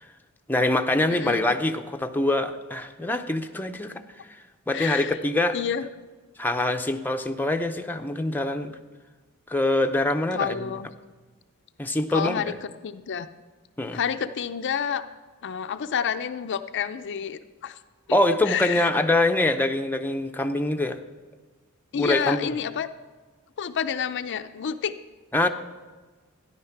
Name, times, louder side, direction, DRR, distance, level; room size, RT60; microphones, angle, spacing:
voice 1, 0.5-3.9 4.7-5.6 6.4-8.7 9.5-10.7 11.8-12.4 13.8-14.0 18.1-21.0 21.9-22.5 25.3-25.5, left 2 dB, 10° left, 5 dB, 0.6 m, -24 dB
voice 2, 1.1-1.4 4.7-5.2 5.5-5.9 10.3-10.9 12.1-13.3 13.9-15.1 15.4-17.8 18.1-18.2 18.4-18.9 21.9-22.9 23.6-24.9, left 7 dB, 55° left, 9 dB, 0.5 m, -29 dB
13.5 x 10.0 x 5.8 m, 1.3 s
head